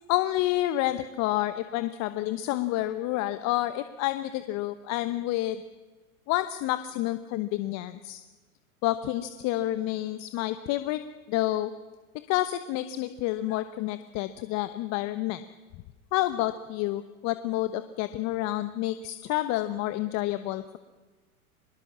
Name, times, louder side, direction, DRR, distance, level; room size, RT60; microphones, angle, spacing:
voice 1, 0.1-5.6 6.3-8.2 8.8-11.0 11.3-11.7 12.3-15.4 16.1-20.8, left 15 dB, 35° left, 12 dB, 1.1 m, -29 dB
24.0 x 21.0 x 7.4 m, 1.3 s
hypercardioid pair, 105°, 43 cm